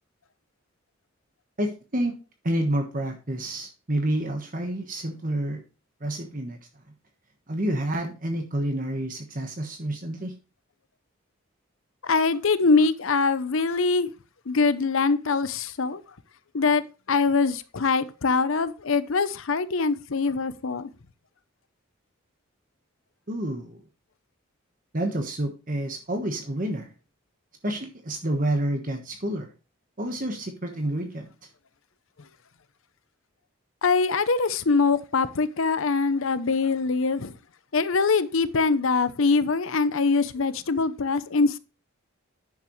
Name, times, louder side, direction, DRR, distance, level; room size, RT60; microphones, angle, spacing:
voice 1, 1.6-2.2 2.4-5.6 6.0-6.6 7.5-10.3 23.3-23.8 24.9-26.9 27.6-29.5 30.0-31.3, right 1 dB, 40° right, 1.3 m, -29 dB
voice 2, 12.0-14.1 14.5-16.0 16.5-16.8 17.1-20.9 33.8-37.3 37.7-41.6, left 4 dB, 70° left, 0.7 m, -23 dB
10.5 x 7.0 x 3.1 m
head